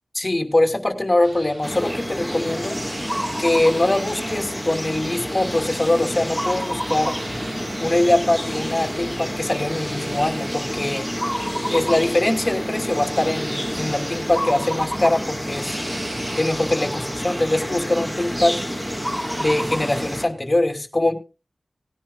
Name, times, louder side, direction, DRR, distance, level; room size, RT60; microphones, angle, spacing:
voice 1, 0.1-2.8 3.4-7.1 7.8-11.1 11.7-15.8 16.4-18.5 19.4-21.1, left 1 dB, 30° left, 3 dB, 2.7 m, -22 dB
sound 1, 1.2-20.6, right 1 dB, 75° right, 3.5 m, -42 dB
sound 2, 1.6-20.3, equal, 5° right, 1.6 m, -28 dB
19.0 x 10.0 x 2.3 m, 0.30 s
wide cardioid pair, 65°, 0 cm